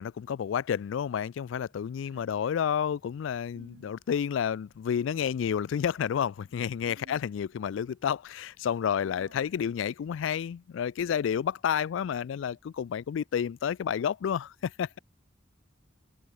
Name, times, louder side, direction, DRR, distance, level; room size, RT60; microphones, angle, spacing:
voice 1, 0.0-15.0, left 8 dB, 75° left, 0.3 m, -30 dB
voice 2, 2.1-2.6 3.5-4.0 6.9-7.3 9.0-9.5, right 1 dB, 65° right, 4.4 m, -54 dB
head